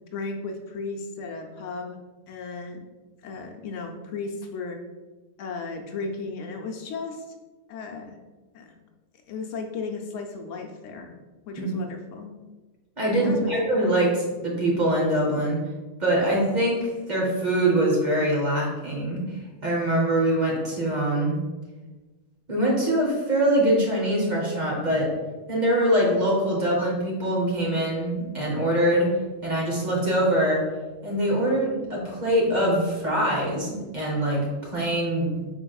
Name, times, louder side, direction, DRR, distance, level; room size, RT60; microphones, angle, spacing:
voice 1, 0.1-2.0 2.3-2.8 3.2-4.8 5.4-7.2 7.7-8.2 8.5-8.7 9.3-11.2 11.5-12.3 13.2-13.5, left 4 dB, 80° left, 3 dB, 0.9 m, -35 dB
voice 2, 13.0-15.6 16.0-19.2 19.6-21.4 22.5-25.1 25.5-29.1 29.4-30.6 31.0-34.5 34.7-35.4, right 1 dB, 40° right, -3 dB, 1.0 m, -23 dB
4.6 x 4.3 x 2.3 m, 1.2 s
omnidirectional pair, 1.3 m